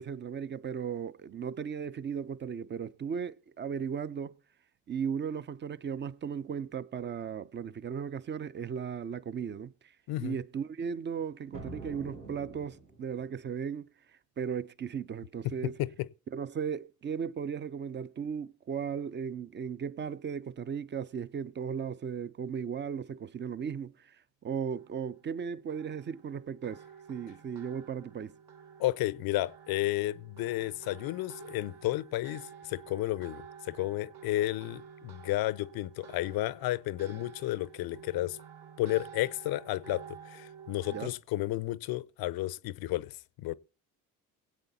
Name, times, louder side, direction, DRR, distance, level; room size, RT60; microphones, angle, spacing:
voice 1, 0.0-4.3 4.9-9.9 10.2-13.9 14.4-15.8 16.3-24.2 24.4-28.3 40.9-41.1, right 7 dB, 25° right, 0.4 m, -36 dB
sound 1, 11.5-13.3, right 2 dB, 90° right, 2.0 m, -45 dB
sound 2, 24.8-41.1, right 7 dB, 50° right, 1.8 m, -51 dB
voice 2, 28.8-38.4 38.8-43.6, left 16 dB, 50° left, 0.5 m, -32 dB
22.0 x 8.2 x 2.7 m
hypercardioid pair, 55°, 48 cm